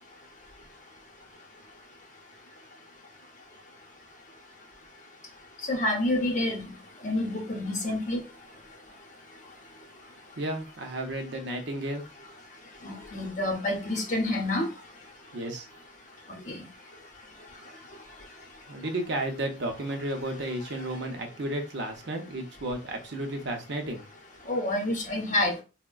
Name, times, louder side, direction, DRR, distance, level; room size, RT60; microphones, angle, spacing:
voice 1, 5.7-6.7 7.0-8.2 12.8-14.7 16.5-16.6 24.5-25.6, left 1 dB, 40° left, 0.7 m, -28 dB
voice 2, 10.4-12.0 15.3-15.7 18.7-24.0, right 1 dB, 60° right, 0.6 m, -33 dB
3.4 x 2.1 x 2.3 m
head